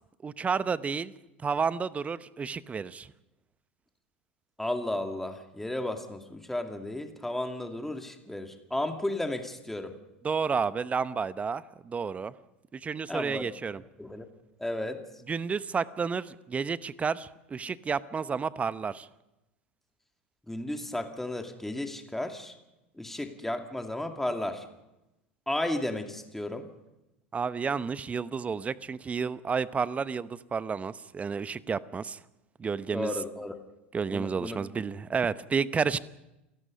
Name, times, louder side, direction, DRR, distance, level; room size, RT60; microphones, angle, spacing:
voice 1, 0.2-1.1 1.4-3.1 10.2-12.3 12.7-13.8 15.3-19.1 27.3-32.2 32.6-33.1 33.9-36.0, right 5 dB, 20° right, 16 dB, 0.9 m, -31 dB
voice 2, 4.6-9.9 13.1-13.5 14.0-14.3 14.6-15.0 20.5-22.5 23.0-24.7 25.5-26.7 32.9-33.5 34.1-34.6, left 1 dB, 5° left, 5 dB, 2.4 m, -33 dB
28.5 x 17.5 x 5.3 m, 0.92 s
figure-of-eight pair, 80°, 6 cm